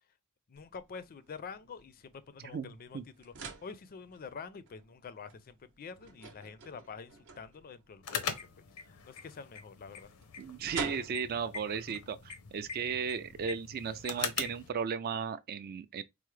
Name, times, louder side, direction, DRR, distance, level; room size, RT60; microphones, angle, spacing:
voice 1, 0.5-8.4 8.9-10.1, left 5 dB, 40° left, 0.4 m, -47 dB
sound 1, 0.5-13.5, right 4 dB, 60° right, 0.7 m, -49 dB
voice 2, 2.4-3.0 10.4-16.0, right 6 dB, 45° right, 0.3 m, -36 dB
sound 2, 8.0-14.7, left 6 dB, 90° left, 0.6 m, -41 dB
4.5 x 2.0 x 3.1 m
head